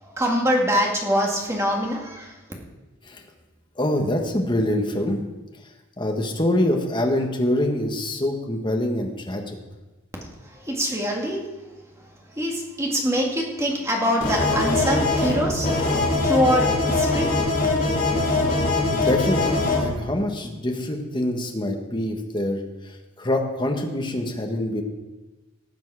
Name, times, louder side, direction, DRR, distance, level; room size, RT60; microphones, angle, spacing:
voice 1, 0.0-2.3 10.5-11.4 12.3-15.7 16.2-17.7, equal, 15° right, -1 dB, 2.0 m, -24 dB
voice 2, 3.8-5.2 6.0-9.6 18.9-24.8, left 1 dB, 20° left, 2 dB, 1.5 m, -25 dB
sound 1, 14.2-19.9, left 2 dB, 40° left, 2.8 m, -22 dB
19.0 x 7.4 x 4.9 m, 1.1 s
head